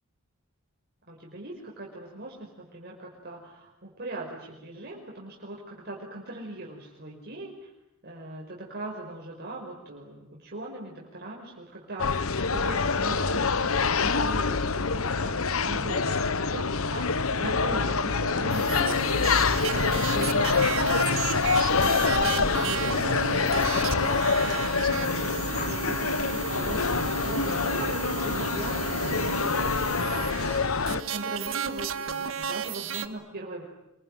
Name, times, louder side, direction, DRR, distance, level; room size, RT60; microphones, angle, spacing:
voice 1, 1.1-7.7 8.0-13.7 14.0-33.6, right 1 dB, 50° right, -2 dB, 5.4 m, -40 dB
sound 1, 12.0-31.0, left 4 dB, 70° left, 1.1 m, -26 dB
sound 2, 18.5-33.1, right 6 dB, 65° right, 1.7 m, -33 dB
sound 3, 25.5-26.2 27.9-28.2 28.6-28.9, left 3 dB, 45° left, 3.2 m, -42 dB
27.5 x 23.5 x 9.3 m, 0.91 s
head